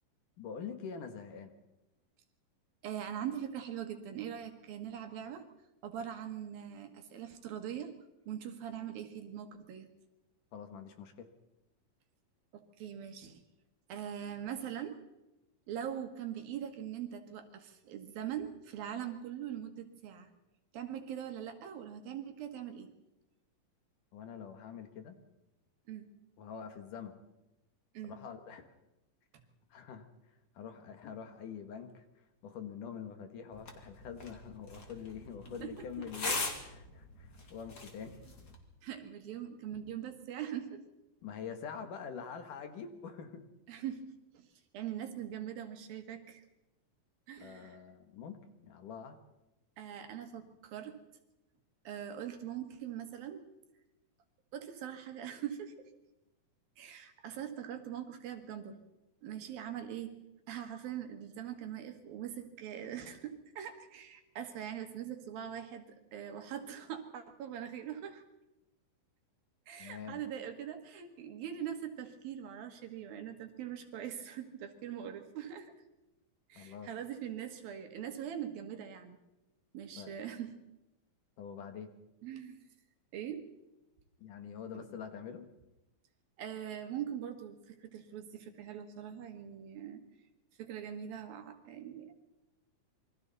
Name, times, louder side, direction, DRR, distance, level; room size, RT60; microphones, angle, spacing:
voice 1, 0.4-1.5 10.5-11.3 24.1-25.2 26.4-27.2 28.0-28.7 29.7-30.1 30.6-38.2 41.2-43.5 47.4-49.2 69.8-70.2 76.6-76.9 80.0-80.1 81.4-81.9 84.2-85.5, left 7 dB, 65° left, 7 dB, 2.9 m, -45 dB
voice 2, 2.8-5.4 5.8-7.9 8.3-9.9 12.5-13.4 13.9-15.0 15.7-20.3 20.7-22.9 25.9-26.1 28.0-28.2 35.6-35.7 38.8-40.8 43.7-44.0 44.3-44.5 44.7-46.4 47.3-47.8 49.8-51.0 51.9-53.4 54.5-55.7 56.8-58.8 59.2-60.2 60.5-68.2 69.7-75.7 76.5-79.2 79.7-80.5 82.2-82.6 83.1-83.5 84.7-84.9 86.4-90.0 90.6-92.2, right 9 dB, 75° right, 6 dB, 3.5 m, -42 dB
sound 1, 33.5-38.5, left 3 dB, 30° left, 2.6 m, -41 dB
27.5 x 23.0 x 4.1 m, 0.96 s
omnidirectional pair, 4.2 m